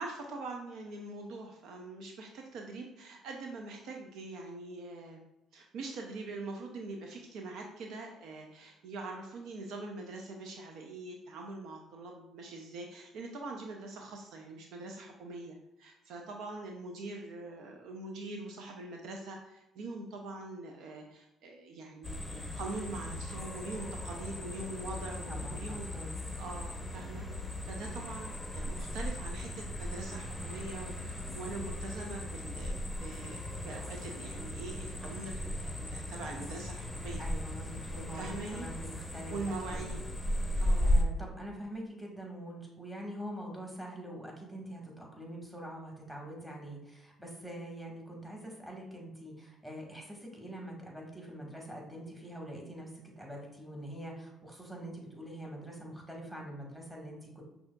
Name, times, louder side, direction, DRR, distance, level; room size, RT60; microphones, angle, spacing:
voice 1, 0.0-5.2 5.5-25.9 26.4-27.3 27.6-37.2 38.1-38.7 39.3-40.1 40.6-40.9, right 2 dB, 65° right, 2 dB, 0.5 m, -43 dB
sound 1, 22.0-41.0, left 1 dB, 15° left, 0.7 m, -36 dB
voice 2, 25.3-26.2 37.2-39.3 39.7-39.9 40.8-52.9 53.2-57.4, right 1 dB, 5° right, -1 dB, 1.4 m, -44 dB
5.6 x 2.7 x 2.2 m, 0.92 s
hypercardioid pair, 55°, 0 cm